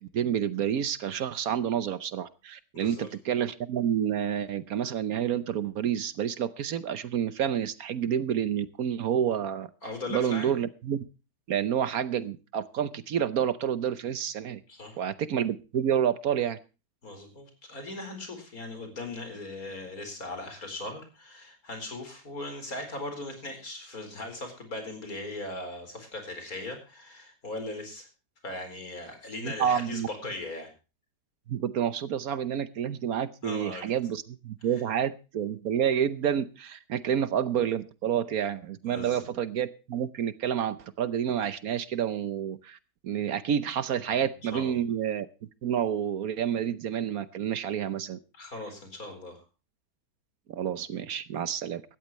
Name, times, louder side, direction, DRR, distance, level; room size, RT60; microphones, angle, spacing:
voice 1, 0.1-9.7 10.1-11.0 11.5-14.6 15.0-16.6 29.4-30.1 31.5-42.8 43.0-45.3 45.6-48.2 50.5-51.8, right 9 dB, 65° right, 14 dB, 1.2 m, -29 dB
voice 2, 2.7-3.1 9.8-10.5 14.7-15.0 17.0-28.1 28.4-30.7 33.4-33.8 38.9-39.2 44.1-44.2 44.5-44.8 48.3-49.4 51.5-51.6, left 2 dB, 60° left, 5 dB, 4.9 m, -39 dB
17.5 x 13.5 x 3.1 m, 0.32 s
omnidirectional pair, 1.7 m